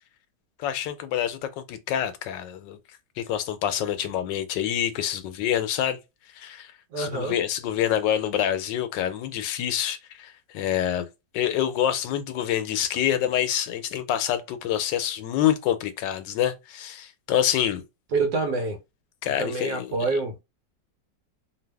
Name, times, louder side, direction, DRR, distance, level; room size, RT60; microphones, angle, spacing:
voice 1, 0.6-2.8 3.2-6.0 6.4-6.7 7.0-11.1 11.3-17.8 19.2-19.9, left 10 dB, 90° left, 1.3 m, -26 dB
voice 2, 6.9-7.3 18.1-18.8 19.4-20.4, right 3 dB, 70° right, 1.3 m, -26 dB
2.8 x 2.6 x 3.4 m
omnidirectional pair, 1.9 m